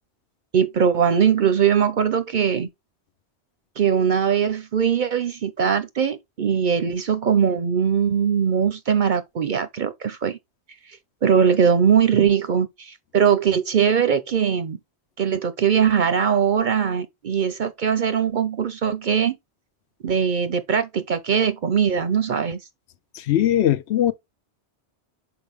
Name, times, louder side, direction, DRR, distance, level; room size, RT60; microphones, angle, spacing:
voice 1, 0.5-2.7 3.8-10.4 11.2-14.8 15.2-19.4 20.0-22.6, right 7 dB, 55° right, 0.6 m, -21 dB
voice 2, 23.1-24.1, left 11 dB, 70° left, 0.9 m, -20 dB
6.0 x 4.7 x 3.4 m
omnidirectional pair, 1.2 m